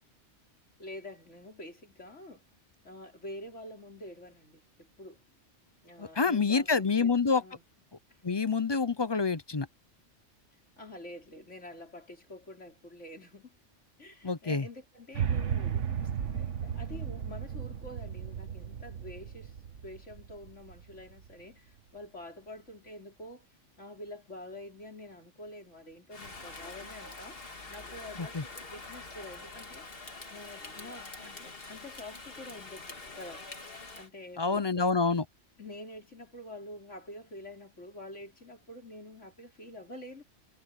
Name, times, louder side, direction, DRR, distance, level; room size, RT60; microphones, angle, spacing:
voice 1, 0.8-2.4 2.8-5.2 5.8-7.6 10.8-13.5 14.0-19.6 19.8-23.5 23.8-28.3 28.7-29.9 30.3-33.4 33.9-34.9 35.6-40.2, left 1 dB, 80° left, 5.4 m, -47 dB
voice 2, 6.0-7.4 8.2-9.7 14.2-14.7 28.2-28.4 34.4-35.2, left 4 dB, 30° left, 0.6 m, -27 dB
sound 1, 15.1-21.3, right 8 dB, 85° right, 1.5 m, -35 dB
Rain, 26.1-34.1, left 3 dB, 50° left, 2.4 m, -45 dB
omnidirectional pair, 1.2 m